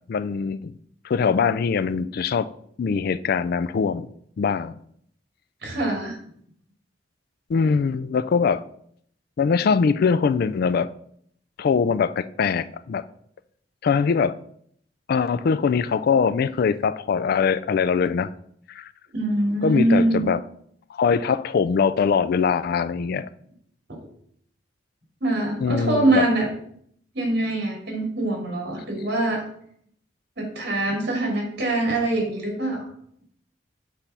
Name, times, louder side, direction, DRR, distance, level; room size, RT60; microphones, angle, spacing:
voice 1, 0.1-0.7 1.0-2.5 2.8-4.1 4.4-4.7 7.5-8.6 9.4-10.9 11.6-13.0 13.8-14.3 15.1-18.3 18.7-18.9 19.6-20.4 20.9-23.3 25.6-26.2, left 5 dB, 55° left, 0.3 m, -22 dB
voice 2, 5.6-6.2 19.1-20.2 25.2-26.5 27.1-29.4 30.4-32.9, right 2 dB, 65° right, 2.7 m, -23 dB
8.3 x 3.4 x 5.6 m
head